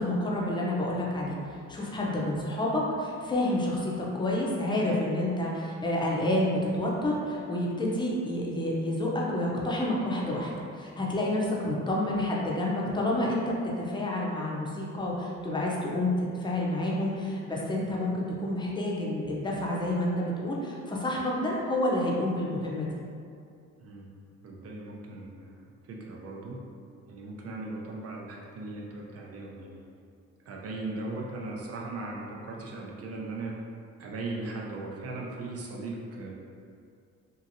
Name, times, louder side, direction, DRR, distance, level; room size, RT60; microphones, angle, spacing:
voice 1, 0.0-1.4 1.7-22.9, left 1 dB, 15° left, -4 dB, 0.5 m, -29 dB
voice 2, 24.4-26.6 27.1-29.8 30.4-33.5 34.0-36.3, right 2 dB, 50° right, -2 dB, 0.6 m, -38 dB
2.8 x 2.5 x 2.6 m, 2.4 s
cardioid pair, 90°, 30 cm